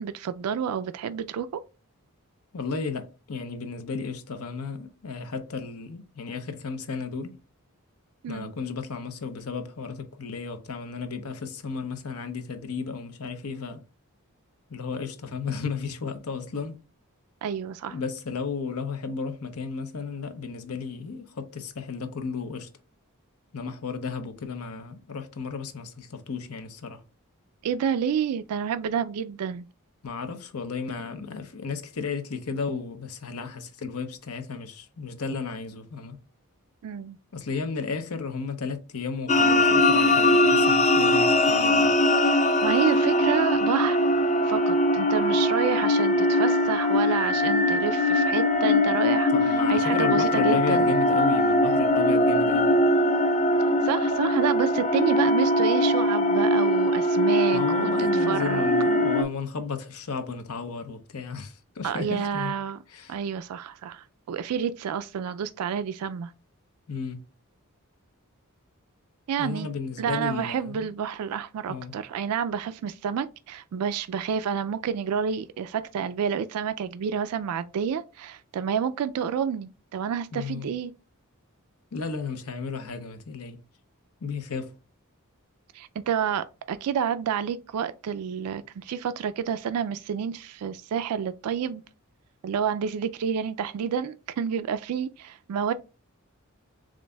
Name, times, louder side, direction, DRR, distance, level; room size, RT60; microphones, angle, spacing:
voice 1, 0.0-1.6 8.2-8.5 17.4-18.0 27.6-29.7 36.8-37.2 42.2-50.9 53.8-58.7 61.8-62.8 63.1-66.3 69.3-69.7 70.0-80.9 85.7-91.8 92.4-95.7, right 7 dB, 90° right, 0.3 m, -29 dB
voice 2, 2.5-7.4 8.3-13.8 14.7-16.8 17.9-22.7 23.5-27.0 30.0-36.2 37.3-42.0 49.3-52.8 57.5-62.5 62.9-63.2 66.9-67.2 69.4-70.9 71.7-71.9 80.3-80.7 81.9-83.6 84.2-84.7, left 5 dB, 85° left, 0.7 m, -34 dB
sound 1, 39.3-59.2, left 1 dB, 30° left, 0.4 m, -21 dB
7.2 x 2.6 x 2.2 m
head